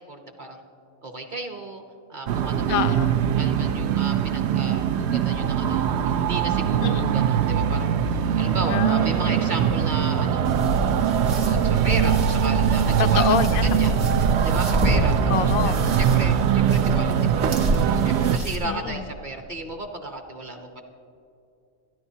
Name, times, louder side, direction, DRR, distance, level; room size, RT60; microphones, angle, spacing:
voice 1, 0.1-0.6 1.0-1.8 2.1-3.0 3.3-7.9 8.4-10.4 11.4-13.4 13.8-13.9 14.4-15.2 15.6-17.6 17.9-20.8, right 2 dB, 40° right, 4 dB, 0.9 m, -34 dB
sound 1, 2.3-18.4, right 8 dB, 65° right, 0.7 m, -22 dB
voice 2, 2.7-3.2 6.8-7.2 8.6-9.5 13.0-14.0 15.3-15.8 18.6-19.0, left 9 dB, 85° left, 11 dB, 1.0 m, -27 dB
sound 2, 10.4-18.5, right 1 dB, 80° right, 2.0 m, -27 dB
28.5 x 10.5 x 2.8 m, 2.6 s
omnidirectional pair, 1.4 m